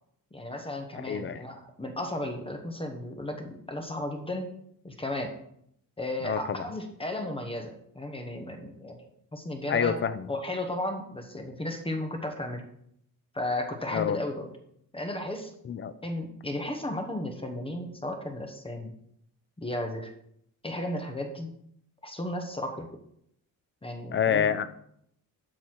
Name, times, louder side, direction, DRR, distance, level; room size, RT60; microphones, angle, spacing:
voice 1, 0.3-4.6 4.8-5.3 6.0-10.0 10.3-12.6 13.3-14.5 14.9-15.5 16.0-18.9 19.6-20.1 20.6-21.5 22.0-22.9 23.8-24.6, left 1 dB, 15° left, 5 dB, 1.1 m, -34 dB
voice 2, 0.9-1.4 6.2-6.6 9.7-10.3 13.9-14.2 15.6-15.9 24.1-24.8, left 8 dB, 35° left, 13 dB, 0.6 m, -27 dB
12.0 x 4.1 x 4.6 m, 0.71 s
cardioid pair, 125°, 35 cm